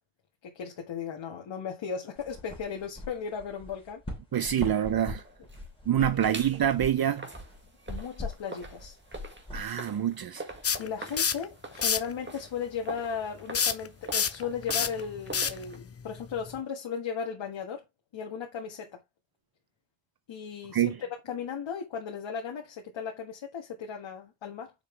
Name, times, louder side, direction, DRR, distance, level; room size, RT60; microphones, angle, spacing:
voice 1, 0.4-4.0 4.4-4.5 6.0-6.2 7.9-9.0 10.8-17.9 18.1-19.0 20.3-20.9 21.3-24.7, left 6 dB, 70° left, 1.7 m, -36 dB
sound 1, 2.2-10.6, left 2 dB, 10° left, 3.3 m, -42 dB
voice 2, 4.3-5.2 5.9-7.3 9.5-10.5 20.7-21.0, right 10 dB, 50° right, 0.6 m, -26 dB
sound 2, 4.8-5.9 6.2-15.8, right 2 dB, 25° right, 1.9 m, -45 dB
sound 3, 10.6-11.4 11.8-12.1 13.5-16.6, left 7 dB, 30° left, 0.6 m, -28 dB
7.2 x 5.5 x 3.3 m
wide cardioid pair, 150°, 47 cm